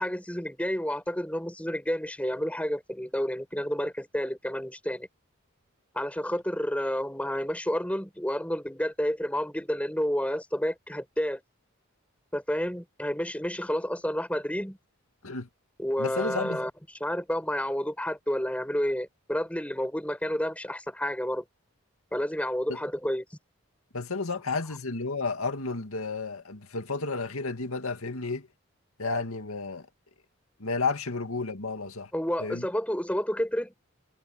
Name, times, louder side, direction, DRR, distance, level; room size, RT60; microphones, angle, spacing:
voice 1, 0.0-5.1 5.9-11.4 12.3-14.8 15.8-16.7 17.0-21.4 22.1-23.2 32.1-33.7, equal, 5° left, 6.0 m, -30 dB
voice 2, 16.0-16.6 22.7-22.8 23.9-28.5 29.0-29.9 30.6-32.1 32.4-32.7, left 3 dB, 80° left, 2.2 m, -32 dB
head